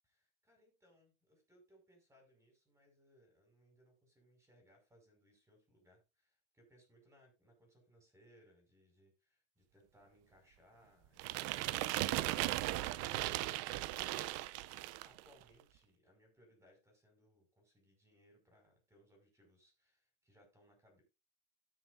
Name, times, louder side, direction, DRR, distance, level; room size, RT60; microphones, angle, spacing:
voice 1, 0.1-13.2 15.0-21.0, equal, 10° right, 3 dB, 5.4 m, -68 dB
sound 1, 11.2-15.2, right 17 dB, 45° right, 0.5 m, -37 dB
18.0 x 6.4 x 2.5 m, 0.26 s
supercardioid pair, 140°, 35 cm